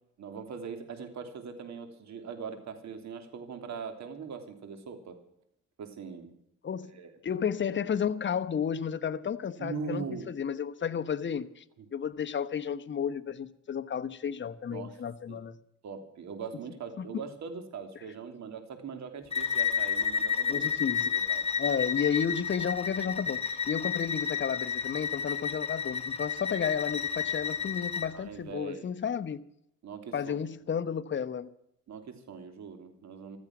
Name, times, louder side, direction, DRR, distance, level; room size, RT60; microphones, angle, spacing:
voice 1, 0.2-5.2 5.8-6.3 6.9-7.1 9.6-10.3 11.8-11.9 14.7-15.0 15.3-15.4 15.8-20.7 21.1-21.5 28.1-28.9 29.8-30.2 31.9-33.4, right 5 dB, 65° right, 3.2 m, -41 dB
voice 2, 6.6-11.6 11.9-15.6 17.0-17.1 20.5-21.2 21.6-29.4 30.1-31.5, left 7 dB, 40° left, 1.0 m, -32 dB
Bowed string instrument, 19.3-28.1, left 6 dB, 20° left, 2.2 m, -31 dB
15.0 x 14.0 x 6.1 m
cardioid pair, 90°, 30 cm